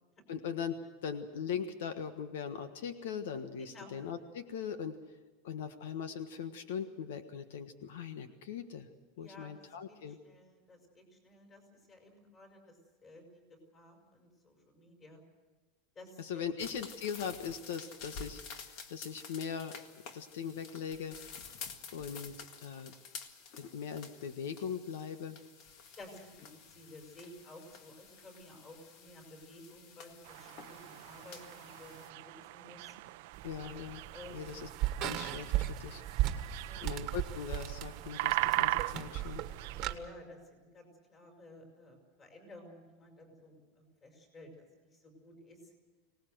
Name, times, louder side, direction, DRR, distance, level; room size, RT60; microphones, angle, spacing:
voice 1, 0.3-5.0 5.4-8.9 9.2-10.2 16.2-19.8 20.1-21.2 21.9-22.9 23.6-25.4 33.4-34.0 34.3-34.7 35.0-36.5 36.8-39.4, left 7 dB, 80° left, 9 dB, 1.4 m, -40 dB
voice 2, 3.6-3.9 9.2-9.6 9.9-15.2 16.0-16.5 26.0-33.0 34.1-34.6 36.6-36.9 39.7-44.6 44.9-45.7, left 1 dB, 20° left, 4 dB, 5.3 m, -54 dB
sound 1, 16.6-32.1, left 5 dB, 45° left, 1.8 m, -50 dB
sound 2, 30.2-39.9, right 19 dB, 60° right, 0.7 m, -39 dB
sound 3, 33.3-40.0, right 13 dB, 35° right, 1.4 m, -37 dB
24.5 x 19.0 x 7.9 m, 1.2 s
supercardioid pair, 165°, 0 cm